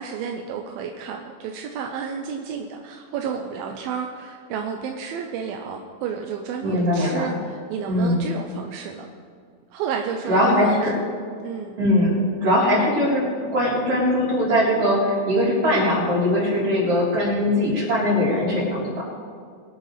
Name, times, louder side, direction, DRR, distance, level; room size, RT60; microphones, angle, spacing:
voice 1, 0.0-9.1 9.7-10.8 11.4-11.8, right 6 dB, 85° right, 3 dB, 2.5 m, -31 dB
voice 2, 6.6-7.2 7.9-8.2 10.3-10.9 11.8-13.2 13.5-18.9, left 1 dB, 40° right, -7 dB, 4.8 m, -20 dB
22.5 x 10.5 x 3.3 m, 2.1 s
omnidirectional pair, 4.3 m